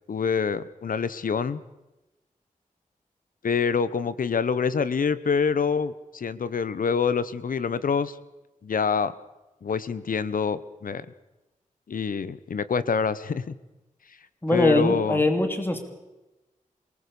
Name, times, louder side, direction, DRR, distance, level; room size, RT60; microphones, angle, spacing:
voice 1, 0.1-1.6 3.4-8.2 8.6-9.1 9.6-11.1 11.9-13.5 14.5-15.2, left 6 dB, 85° left, 15 dB, 1.1 m, -26 dB
voice 2, 14.4-15.9, left 1 dB, 15° left, 6 dB, 2.8 m, -22 dB
26.5 x 19.5 x 7.1 m, 1.0 s
wide cardioid pair, 125°, 14 cm